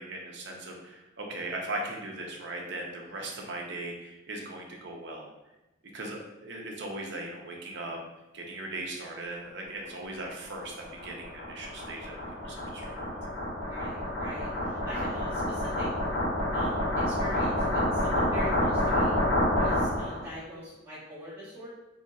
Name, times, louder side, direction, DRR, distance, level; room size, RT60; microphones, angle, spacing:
voice 1, 0.0-5.3 5.9-8.0 8.3-10.7 11.0-12.2 12.4-13.2, right 2 dB, 60° right, 0 dB, 0.7 m, -38 dB
sound 1, 10.2-20.2, left 1 dB, 85° left, 1.2 m, -28 dB
voice 2, 13.6-15.9 16.5-19.1 19.5-21.7, equal, 15° right, -14 dB, 1.0 m, -42 dB
2.7 x 2.5 x 4.0 m, 0.97 s
head